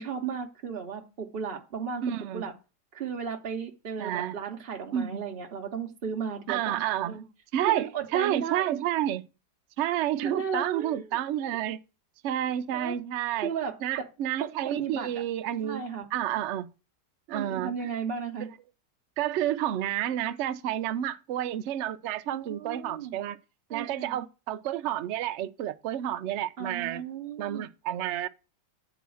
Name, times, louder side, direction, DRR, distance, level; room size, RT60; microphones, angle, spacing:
voice 1, 0.0-2.0 2.3-2.5 2.9-6.6 7.1-7.2 7.7-8.8 10.2-11.2 12.7-13.0 13.3-14.1 14.4-15.2 15.6-16.1 17.3-18.5 22.3-23.2 23.7-24.2 26.6-27.6, right 6 dB, 50° right, 0.8 m, -35 dB
voice 2, 2.0-2.5 4.0-4.3 4.9-5.2 6.5-7.1 7.5-9.2 9.8-11.8 12.2-13.5 13.8-15.8 16.1-16.7 17.3-17.7 19.2-23.4 23.7-27.0 27.4-28.3, right 11 dB, 85° right, 0.6 m, -30 dB
9.3 x 3.9 x 6.1 m
omnidirectional pair, 1.8 m